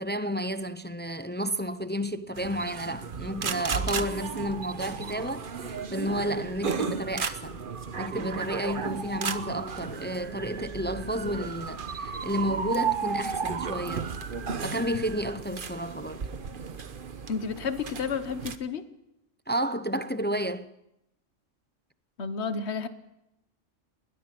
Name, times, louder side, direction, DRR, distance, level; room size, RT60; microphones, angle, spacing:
voice 1, 0.0-7.6 8.0-14.1 14.6-16.3 19.5-20.7, equal, 15° left, 0.4 m, -31 dB
sound 1, 2.4-18.5, right 6 dB, 45° right, 1.1 m, -34 dB
voice 2, 17.3-18.8 22.2-22.9, left 5 dB, 60° left, 1.4 m, -31 dB
21.0 x 20.5 x 6.0 m
omnidirectional pair, 1.3 m